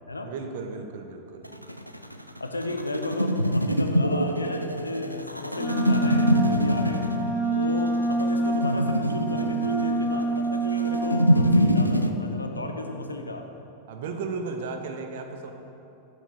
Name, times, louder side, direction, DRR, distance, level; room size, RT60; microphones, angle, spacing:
voice 1, 0.2-1.5 7.9-8.0 13.9-15.5, right 4 dB, 55° right, 5 dB, 0.7 m, -35 dB
sound 1, 1.4-12.1, equal, 90° right, 0.3 m, -25 dB
voice 2, 2.4-7.1 7.6-13.4, left 2 dB, 80° left, 5 dB, 0.5 m, -33 dB
Wind instrument woodwind instrument, 5.6-11.6, right 3 dB, 15° right, 0.9 m, -27 dB
8.1 x 7.9 x 2.9 m, 2.8 s
figure-of-eight pair, 90°, 0 cm